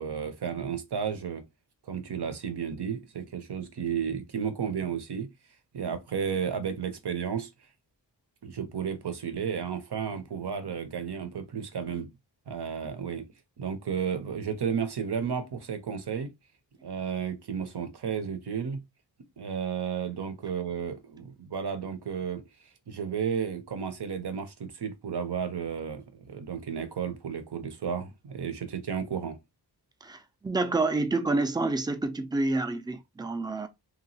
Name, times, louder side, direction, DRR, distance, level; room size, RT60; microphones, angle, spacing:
voice 1, 0.0-1.5 1.9-5.3 5.7-7.5 8.4-12.1 12.5-13.3 13.6-16.3 16.8-18.8 19.4-22.4 22.9-29.4, right 7 dB, 70° right, 0.6 m, -33 dB
voice 2, 30.0-33.7, right 2 dB, 10° right, 0.3 m, -28 dB
2.9 x 2.3 x 2.7 m
wide cardioid pair, 50°, 42 cm